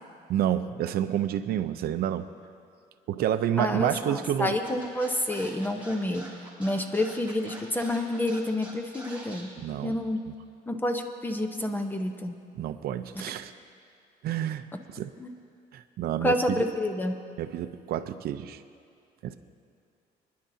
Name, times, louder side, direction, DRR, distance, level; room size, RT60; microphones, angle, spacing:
voice 1, 0.3-2.3 3.1-4.6 9.6-10.0 12.6-13.5 14.2-14.6 14.9-15.1 15.7-16.6 17.4-18.6 19.2-19.4, right 11 dB, 65° right, 10 dB, 0.7 m, -29 dB
voice 2, 3.6-6.3 6.6-9.6 9.8-10.3 10.7-12.3 13.1-13.2 14.7-14.8 15.2-15.3 16.2-17.2, left 1 dB, 10° left, 6 dB, 0.9 m, -29 dB
Scratching (performance technique), 4.6-9.4, right 1 dB, 10° right, 3.3 m, -44 dB
24.0 x 10.5 x 2.8 m, 2.5 s
cardioid pair, 110°, 17 cm